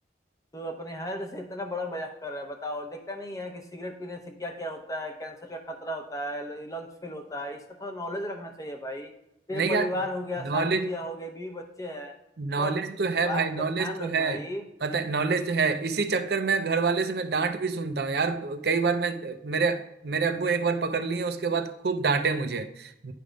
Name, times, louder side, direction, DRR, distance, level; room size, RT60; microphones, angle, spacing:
voice 1, 0.5-9.1 9.5-12.1 12.6-12.8 13.2-14.6, left 1 dB, 20° left, 0.8 m, -35 dB
voice 2, 9.5-9.9 10.4-10.9 12.4-14.4 14.8-23.1, right 4 dB, 60° right, 0.5 m, -27 dB
9.8 x 3.4 x 5.1 m
head